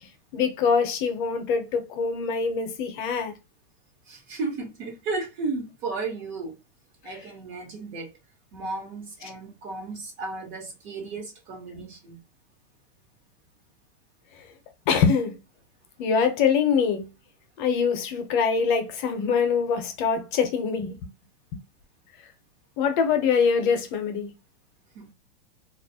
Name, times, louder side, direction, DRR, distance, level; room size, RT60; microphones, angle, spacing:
voice 1, 0.3-3.3 14.9-15.4 16.0-17.1 17.6-20.9 22.8-24.3, left 6 dB, 50° left, 0.7 m, -24 dB
voice 2, 4.1-6.6 7.0-8.1 8.5-12.2 24.9-25.1, right 3 dB, 40° right, 1.0 m, -34 dB
2.3 x 2.0 x 2.7 m
hypercardioid pair, 135°, 32 cm